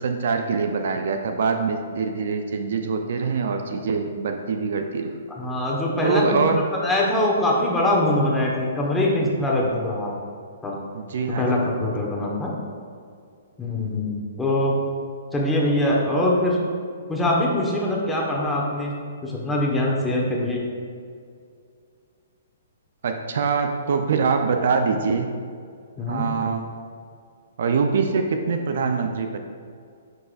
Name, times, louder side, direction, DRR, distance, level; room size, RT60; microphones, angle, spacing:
voice 1, 0.0-5.2 6.0-6.6 10.9-11.7 23.0-25.3 26.1-26.8 27.6-29.4, right 5 dB, 65° right, 6 dB, 0.6 m, -24 dB
voice 2, 5.4-6.4 6.8-10.1 10.6-10.8 11.4-12.5 13.6-14.1 14.4-14.8 15.3-16.6 17.1-18.9 19.2-20.6 26.0-26.2, left 1 dB, 10° left, -3 dB, 1.3 m, -23 dB
11.0 x 4.7 x 2.5 m, 2.2 s
hypercardioid pair, 125°, 0 cm